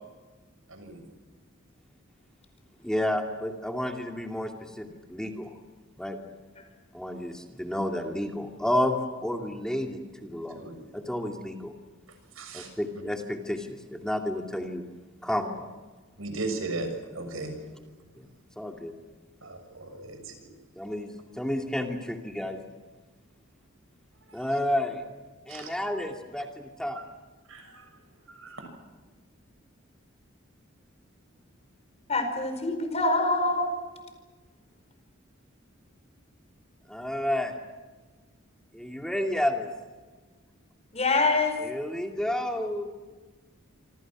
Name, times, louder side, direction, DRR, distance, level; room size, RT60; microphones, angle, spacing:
voice 1, 0.7-1.0 10.5-10.8 12.4-12.7 16.2-17.6 19.4-20.5 24.4-24.5 25.5-25.7 27.5-27.8 28.3-28.7, right 2 dB, 85° right, 6 dB, 6.6 m, -36 dB
voice 2, 2.8-5.5 6.0-6.2 6.9-10.6 10.9-11.7 12.5-14.8 15.2-15.7 18.2-18.3 18.6-18.9 20.8-22.6 24.3-25.0 25.5-27.0 36.9-37.6 38.7-39.7 41.6-42.9, left 1 dB, 5° left, 3 dB, 2.4 m, -31 dB
voice 3, 32.1-33.7 40.9-41.6, left 3 dB, 30° left, 7 dB, 4.9 m, -25 dB
27.0 x 26.5 x 6.2 m, 1.3 s
head